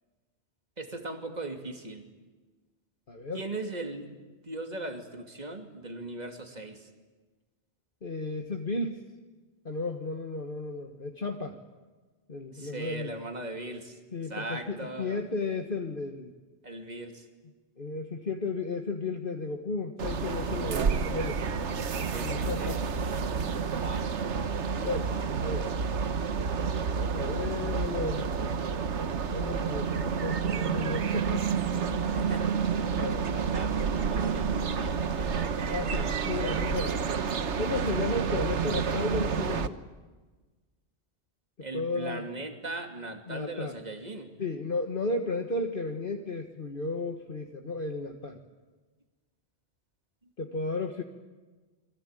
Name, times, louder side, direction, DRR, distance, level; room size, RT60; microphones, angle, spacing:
voice 1, 0.8-2.1 3.3-6.8 12.6-13.9 14.3-15.2 16.6-17.2 22.1-22.7 23.8-24.0 32.1-32.4 33.2-36.7 41.6-44.3, right 2 dB, 35° right, 5 dB, 2.8 m, -39 dB
voice 2, 3.1-3.4 8.0-9.0 9.7-11.6 12.3-13.1 14.1-16.3 17.8-21.4 22.2-22.8 24.8-25.7 26.9-28.3 29.3-31.6 32.9-33.3 35.7-37.0 37.6-39.8 41.6-42.3 43.3-43.8 44.4-48.4 50.4-51.0, left 3 dB, 50° left, 4 dB, 1.7 m, -34 dB
sound 1, 20.0-39.7, right 6 dB, 80° right, 1.4 m, -29 dB
28.5 x 22.0 x 9.0 m, 1.3 s
omnidirectional pair, 1.2 m